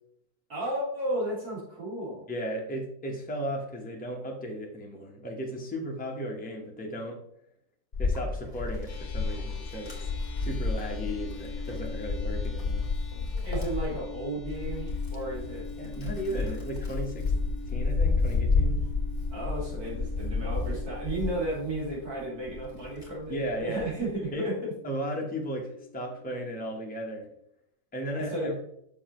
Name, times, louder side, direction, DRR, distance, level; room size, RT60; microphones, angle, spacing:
voice 1, 0.5-2.2 13.4-15.7 16.3-16.5 19.3-24.6 28.1-28.5, right 1 dB, 55° right, -6 dB, 2.9 m, -33 dB
voice 2, 2.3-7.2 8.0-10.1 10.4-12.8 15.8-17.3 17.7-18.8 23.3-23.9 24.3-24.5 24.8-27.3 27.9-28.6, equal, 5° left, 0 dB, 0.8 m, -35 dB
Wind, 7.9-22.0 22.5-24.0, left 4 dB, 25° left, 2.1 m, -31 dB
sound 1, 8.9-27.4, left 3 dB, 50° left, 1.1 m, -47 dB
7.0 x 6.3 x 3.1 m, 0.74 s
omnidirectional pair, 1.9 m